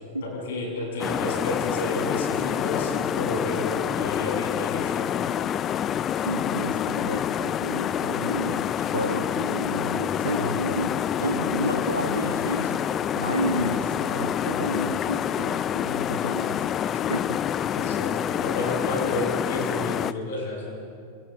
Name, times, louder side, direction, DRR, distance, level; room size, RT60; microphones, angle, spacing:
voice 1, 0.2-5.2 17.7-20.8, left 2 dB, 60° left, -2 dB, 7.8 m, -31 dB
sound 1, 1.0-20.1, left 9 dB, 30° left, 0.5 m, -27 dB
voice 2, 6.2-12.9 13.1-16.6 16.9-17.4, right 1 dB, 85° right, 6 dB, 1.5 m, -31 dB
29.0 x 28.0 x 3.7 m, 2.3 s
figure-of-eight pair, 90°, 0 cm